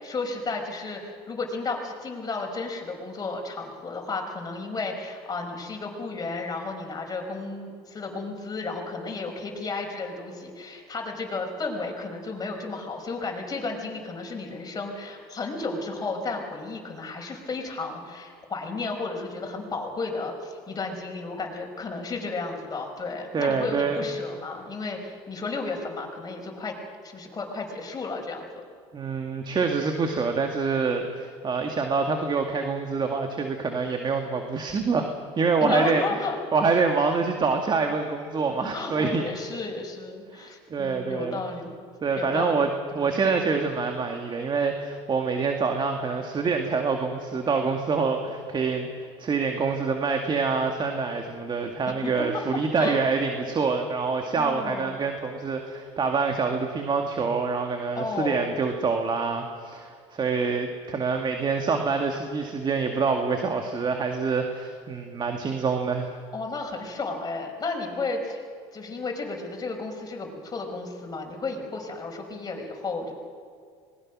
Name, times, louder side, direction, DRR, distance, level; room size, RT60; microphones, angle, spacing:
voice 1, 0.0-26.7 27.0-28.5 35.6-36.4 38.6-41.8 42.2-42.6 42.9-43.2 51.9-52.1 52.8-53.0 54.3-55.0 58.0-58.5 66.3-68.5 68.7-73.1, left 3 dB, 25° left, 2 dB, 5.4 m, -33 dB
voice 2, 23.3-24.1 28.9-35.1 35.4-36.0 36.5-39.2 40.3-41.4 42.0-42.7 43.0-48.9 49.2-66.1, right 4 dB, 30° right, 4 dB, 2.1 m, -26 dB
25.5 x 20.5 x 6.2 m, 2.2 s
supercardioid pair, 90°, 14 cm